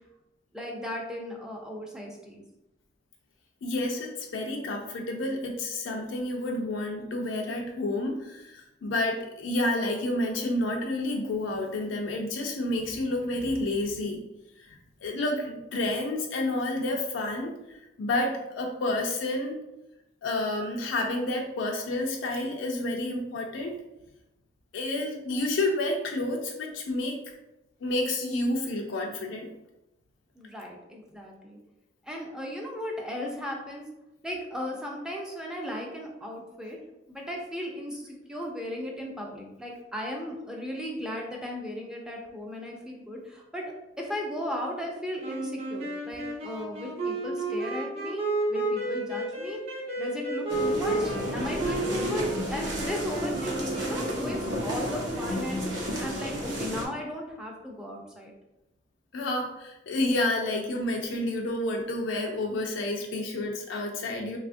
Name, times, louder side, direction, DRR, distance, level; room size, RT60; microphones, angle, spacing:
voice 1, 0.5-2.4 30.4-31.6 32.0-33.9 34.2-36.8 37.1-43.7 44.0-49.6 50.0-58.3, equal, 5° right, -1 dB, 0.4 m, -36 dB
voice 2, 3.6-14.2 14.6-19.6 20.2-23.8 24.7-27.2 27.8-29.5 59.1-64.4, left 2 dB, 80° left, 1 dB, 0.4 m, -30 dB
sound 1, 45.2-54.4, right 2 dB, 35° right, 0.7 m, -32 dB
sound 2, 50.5-56.9, equal, 85° right, 0.7 m, -32 dB
3.3 x 2.3 x 2.5 m, 0.92 s
head